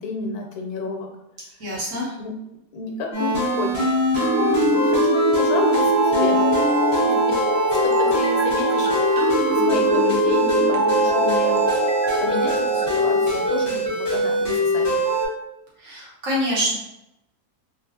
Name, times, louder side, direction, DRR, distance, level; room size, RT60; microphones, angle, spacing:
voice 1, 0.0-1.1 2.2-2.3 2.7-3.8 4.6-6.7 7.0-7.4 7.7-11.6 12.2-15.0, left 3 dB, 90° left, 2 dB, 1.2 m, -31 dB
voice 2, 1.6-2.2 15.8-16.7, equal, 60° right, -6 dB, 1.4 m, -25 dB
sound 1, 3.1-15.3, right 1 dB, 20° left, 1.0 m, -22 dB
sound 2, 4.2-13.5, equal, 80° right, 1.1 m, -23 dB
3.2 x 2.4 x 2.7 m, 0.88 s
omnidirectional pair, 1.6 m